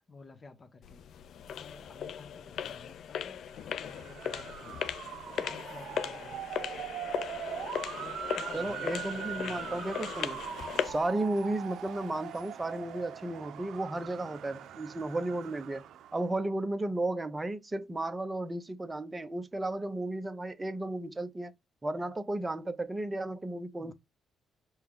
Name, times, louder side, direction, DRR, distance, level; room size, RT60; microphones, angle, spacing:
voice 1, 0.1-1.0 1.5-3.4 3.8-4.9 5.3-6.4 8.0-9.8 23.8-23.9, left 4 dB, 35° left, 0.8 m, -52 dB
sound 1, 0.8-11.1, left 8 dB, 70° left, 0.3 m, -38 dB
Motor vehicle (road) / Siren, 3.6-16.3, right 11 dB, 80° right, 0.5 m, -42 dB
voice 2, 8.5-10.4 10.8-15.8 16.1-21.5 21.8-23.9, right 2 dB, 20° right, 0.7 m, -34 dB
5.5 x 2.2 x 3.6 m
cardioid pair, 95°, 0 cm